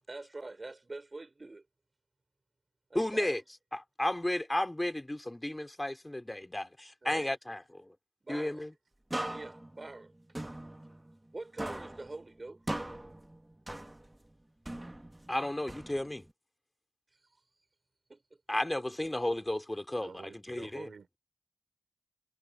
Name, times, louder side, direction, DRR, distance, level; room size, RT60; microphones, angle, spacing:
voice 1, 0.1-1.7 2.9-3.4 7.0-7.3 8.2-8.7 9.3-10.1 11.3-12.6 17.1-17.4 18.1-18.4 18.8-18.9, right 2 dB, 40° right, 5.6 m, -45 dB
voice 2, 2.9-3.4 3.7-7.9 8.3-8.7 15.3-16.2 18.5-20.9, left 1 dB, 20° left, 3.4 m, -33 dB
sound 1, 9.1-11.3 11.6-14.3 14.7-16.3, right 1 dB, 20° right, 1.9 m, -41 dB
voice 3, 20.0-21.2, right 5 dB, 75° right, 5.2 m, -50 dB
cardioid pair, 40°, 0 cm